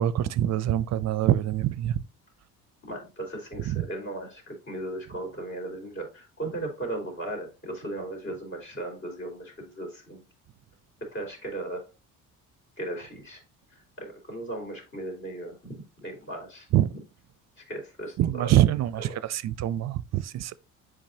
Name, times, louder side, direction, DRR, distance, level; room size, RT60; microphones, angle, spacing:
voice 1, 0.0-2.0 3.7-3.8 16.7-16.9 18.2-20.6, right 12 dB, 50° right, 0.5 m, -24 dB
voice 2, 2.9-10.2 11.1-11.8 12.8-13.4 14.0-16.7 17.6-18.5 19.0-19.2, right 2 dB, 35° left, 3.5 m, -36 dB
7.4 x 5.1 x 2.7 m
cardioid pair, 110°, 33 cm